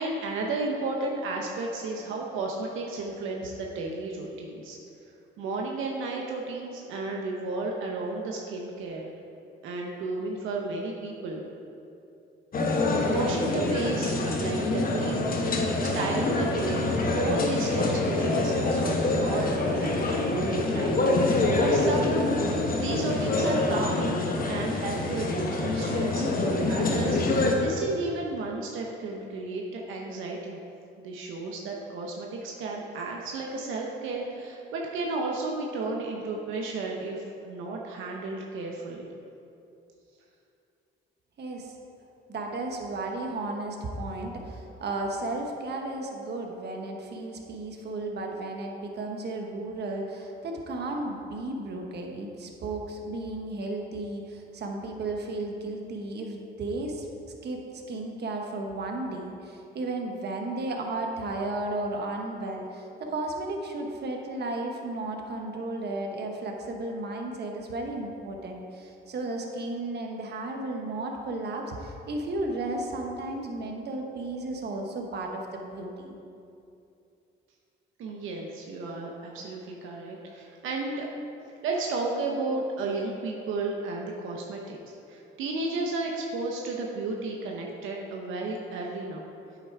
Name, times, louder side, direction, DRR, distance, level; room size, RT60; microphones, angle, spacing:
voice 1, 0.0-4.8 5.4-9.1 9.6-11.4 13.1-15.3 15.8-22.1 22.7-30.6 31.0-39.1 78.0-81.1 81.6-84.8 85.1-89.3, right 3 dB, 85° right, -1 dB, 0.9 m, -33 dB
sound 1, 12.5-27.5, left 2 dB, 45° left, 1.2 m, -26 dB
voice 2, 41.4-41.7 42.3-57.1 57.4-76.1, right 2 dB, 55° right, 1 dB, 1.2 m, -34 dB
8.7 x 6.0 x 4.7 m, 2.7 s
cardioid pair, 90°, 20 cm